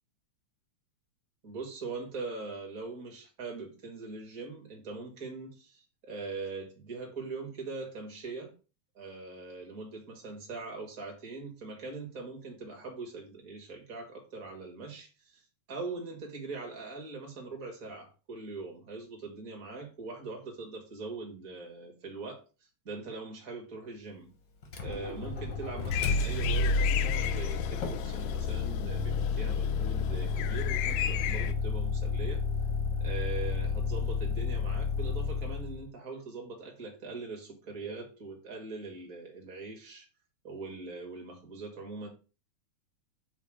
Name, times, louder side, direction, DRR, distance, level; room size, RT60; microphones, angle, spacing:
voice 1, 1.4-8.5 8.9-22.4 22.8-24.3 24.8-32.4 33.0-40.1 40.4-42.1, right 3 dB, 30° right, 1.8 m, -41 dB
Motor vehicle (road), 24.6-35.8, left 4 dB, 55° left, 1.3 m, -31 dB
sound 1, 25.9-31.5, left 12 dB, 90° left, 2.2 m, -36 dB
8.8 x 2.9 x 4.9 m
omnidirectional pair, 3.8 m